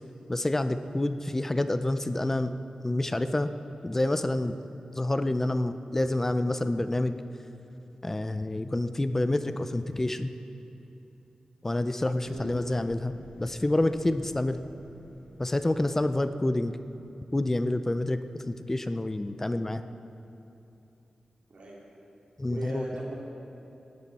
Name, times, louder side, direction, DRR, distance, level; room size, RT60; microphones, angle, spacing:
voice 1, 0.3-2.5 2.8-3.5 3.8-4.5 5.0-7.2 8.0-10.3 11.6-13.1 13.4-14.6 15.4-16.8 17.3-19.8 22.4-22.8, left 1 dB, 15° left, 10 dB, 0.4 m, -28 dB
sound 1, 12.2-17.6, left 1 dB, 70° left, 2.2 m, -53 dB
voice 2, 22.4-23.1, right 1 dB, 70° right, -5 dB, 3.0 m, -38 dB
17.5 x 13.0 x 4.2 m, 2.8 s
wide cardioid pair, 170°, 2 cm